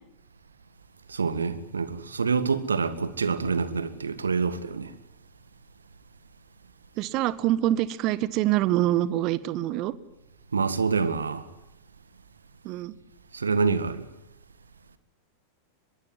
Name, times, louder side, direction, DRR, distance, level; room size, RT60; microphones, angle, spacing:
voice 1, 1.1-4.9 10.5-11.5 13.3-14.1, right 5 dB, 75° right, 1.9 m, -26 dB
voice 2, 7.0-9.9 12.6-12.9, right 14 dB, 40° right, 1.6 m, -25 dB
25.0 x 22.5 x 9.7 m
figure-of-eight pair, 90°, 0 cm